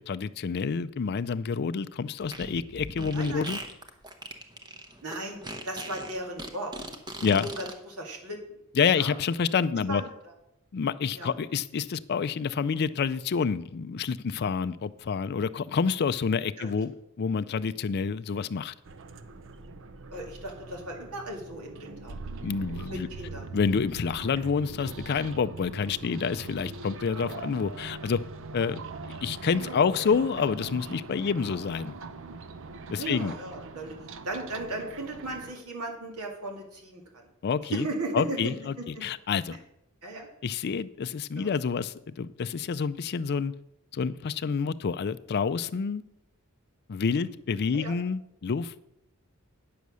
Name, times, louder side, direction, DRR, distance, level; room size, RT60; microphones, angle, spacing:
voice 1, 0.0-3.6 7.2-7.5 8.8-10.0 10.7-16.9 17.2-18.7 22.4-23.1 23.5-28.2 28.5-28.8 29.2-31.9 32.9-33.3 37.4-37.9 38.1-39.6 40.4-43.5 43.9-46.0 46.9-48.7, left 5 dB, 45° left, 13 dB, 0.4 m, -28 dB
Fart, 2.2-7.7, right 1 dB, 20° right, 0.9 m, -40 dB
voice 2, 3.0-3.4 5.0-5.4 5.6-6.7 7.2-8.6 8.9-9.2 9.7-10.3 11.1-11.3 16.6-16.7 20.1-22.1 22.9-23.5 29.6-30.2 33.0-34.0 34.2-37.3 37.6-39.0 39.5-39.6 40.0-40.3 41.4-41.5 47.2-47.3 47.7-48.0, right 1 dB, 80° right, 2 dB, 2.2 m, -37 dB
sound 1, 18.8-35.5, right 4 dB, 60° right, 0.6 m, -42 dB
9.4 x 6.8 x 6.2 m, 0.82 s
head